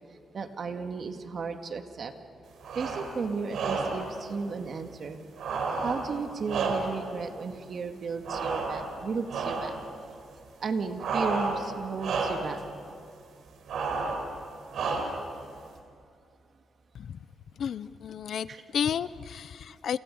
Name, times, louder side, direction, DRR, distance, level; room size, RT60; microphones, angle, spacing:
voice 1, 0.3-2.1 2.8-5.2 5.8-9.8 10.6-12.6 18.5-18.6, right 5 dB, 45° right, 6 dB, 1.9 m, -34 dB
sound 1, 2.6-3.1 3.5-4.1 5.4-7.1 8.2-9.0 9.3-9.8 11.0-11.7 12.0-12.5 13.7-14.3 14.7-15.3, right 4 dB, 70° right, 4.5 m, -31 dB
voice 2, 17.6-18.5 18.7-20.0, left 8 dB, 60° left, 16 dB, 0.6 m, -32 dB
30.0 x 28.5 x 5.5 m, 2.3 s
cardioid pair, 135°, 0 cm